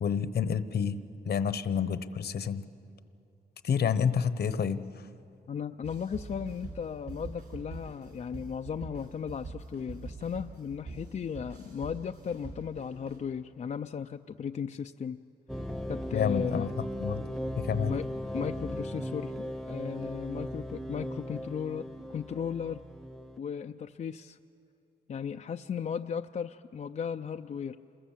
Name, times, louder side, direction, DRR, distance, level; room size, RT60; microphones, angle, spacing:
voice 1, 0.0-1.0 1.2-2.6 3.6-4.8 16.1-16.7 17.0-17.2 17.6-17.9, left 7 dB, 60° left, 13 dB, 1.0 m, -29 dB
voice 2, 5.5-15.2 15.9-16.7 17.9-18.1 18.3-22.8 23.4-24.4 25.1-27.8, left 7 dB, 40° left, 6 dB, 0.5 m, -36 dB
sound 1, 5.8-13.2, right 3 dB, 60° right, 7.6 m, -44 dB
sound 2, 15.5-23.4, equal, ahead, 1.0 m, -37 dB
28.0 x 21.5 x 7.4 m, 2.7 s
cardioid pair, 90°, 18 cm